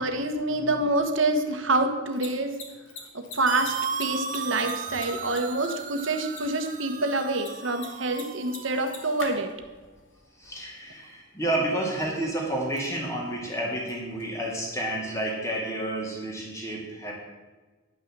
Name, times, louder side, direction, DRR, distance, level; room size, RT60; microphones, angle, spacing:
voice 1, 0.0-2.6 3.1-9.5, right 2 dB, 70° right, 6 dB, 1.3 m, -27 dB
Mechanisms, 1.9-15.5, left 3 dB, 65° left, 2.1 m, -48 dB
sound 1, 3.5-9.2, right 6 dB, 40° right, 0.7 m, -35 dB
voice 2, 10.4-17.2, right 1 dB, 15° left, -2 dB, 2.4 m, -30 dB
10.5 x 6.0 x 7.4 m, 1.3 s
head